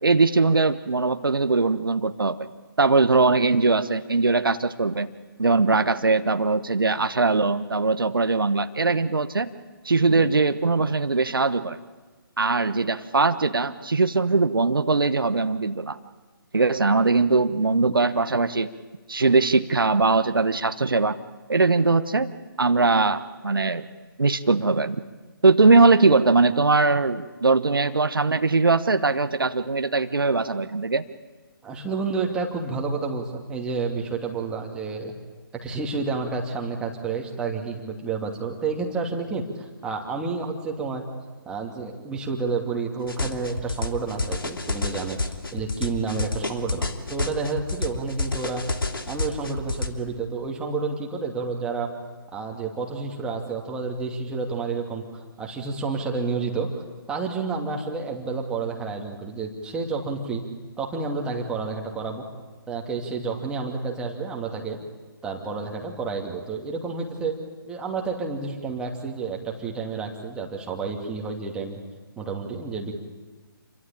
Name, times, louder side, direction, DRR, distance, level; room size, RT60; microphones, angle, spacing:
voice 1, 0.0-2.5 2.8-5.1 5.4-9.5 9.8-11.8 12.4-16.0 16.5-18.7 19.1-21.2 21.5-22.3 22.6-23.8 24.2-25.0 25.4-31.0, right 3 dB, 65° right, 10 dB, 1.3 m, -21 dB
voice 2, 31.6-35.1 35.6-41.0 41.4-45.2 45.5-48.6 49.0-51.9 52.3-56.7 57.1-60.4 60.8-62.2 62.7-64.8 65.2-67.3 67.7-71.8 72.2-72.9, right 4 dB, 5° right, 0 dB, 2.6 m, -30 dB
sound 1, 43.1-49.9, left 3 dB, 70° left, 2.9 m, -29 dB
28.5 x 23.5 x 8.8 m, 1.3 s
figure-of-eight pair, 145°, 12 cm